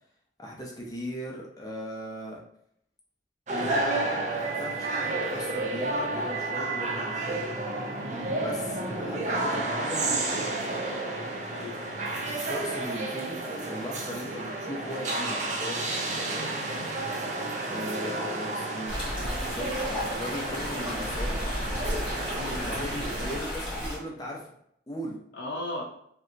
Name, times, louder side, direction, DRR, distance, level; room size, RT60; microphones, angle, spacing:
voice 1, 0.4-2.4 3.5-7.5 8.4-10.8 12.2-16.5 17.7-19.0 19.4-21.4 22.6-24.5 24.9-25.2, equal, 20° left, -2 dB, 0.6 m, -38 dB
sound 1, 3.5-23.4, right 2 dB, 40° right, 0.4 m, -31 dB
voice 2, 11.5-12.2 22.3-22.7 25.3-25.8, left 1 dB, 90° left, -1 dB, 0.5 m, -37 dB
sound 2, 18.9-24.0, equal, 10° right, 1.5 m, -33 dB
3.3 x 2.8 x 2.5 m, 0.70 s
head